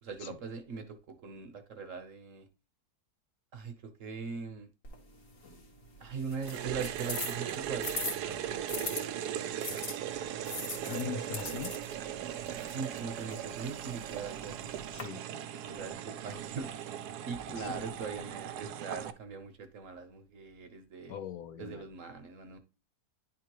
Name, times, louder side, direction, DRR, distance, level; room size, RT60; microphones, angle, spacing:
voice 1, 0.0-2.5 3.5-4.7 6.0-8.0 8.3-9.0 12.7-14.7 15.7-16.7 17.2-21.1 21.6-22.6, right 5 dB, 55° right, 7 dB, 1.1 m, -41 dB
sound 1, 4.8-9.0 9.6-15.0, left 3 dB, 55° left, 1.8 m, -42 dB
sound 2, 6.4-19.1, right 10 dB, 80° right, 1.2 m, -38 dB
voice 2, 10.9-12.2 14.9-15.2 17.6-17.8 21.1-21.8, left 7 dB, 70° left, 10 dB, 1.1 m, -41 dB
10.5 x 3.7 x 3.0 m, 0.29 s
omnidirectional pair, 1.7 m